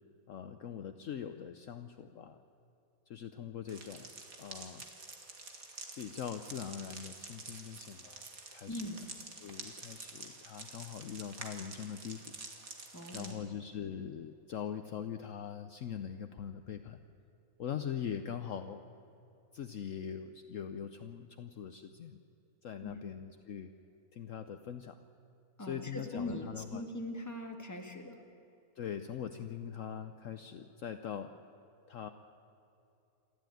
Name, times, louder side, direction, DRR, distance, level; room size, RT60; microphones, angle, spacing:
voice 1, 0.3-2.4 3.1-4.1 4.4-4.8 6.0-8.3 8.5-8.8 9.4-12.2 13.1-17.0 17.6-18.9 19.5-22.2 22.6-23.7 24.1-25.0 25.6-26.8 28.8-31.3 31.9-32.1, left 8 dB, 60° left, 8 dB, 1.1 m, -42 dB
sound 1, 3.7-13.3, right 3 dB, 65° right, 2.4 m, -48 dB
voice 2, 8.7-9.0 12.9-13.4 22.8-22.9 25.6-28.2, left 1 dB, 10° left, 3 dB, 1.9 m, -41 dB
27.5 x 13.0 x 9.2 m, 2.7 s
omnidirectional pair, 1.6 m